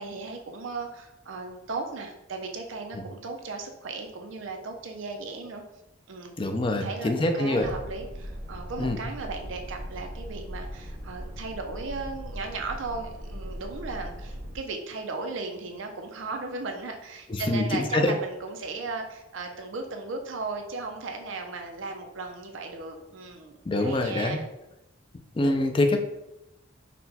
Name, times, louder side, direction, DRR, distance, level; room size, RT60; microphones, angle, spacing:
voice 1, 0.0-5.6 6.1-6.3 6.7-24.5, right 3 dB, 85° right, 4 dB, 0.6 m, -36 dB
voice 2, 6.4-7.7 8.8-9.0 17.3-18.1 23.7-24.4 25.4-26.0, left 2 dB, 25° left, 5 dB, 0.4 m, -25 dB
sound 1, 7.6-14.6, equal, 55° right, 0.8 m, -39 dB
4.1 x 2.2 x 4.0 m, 0.89 s
head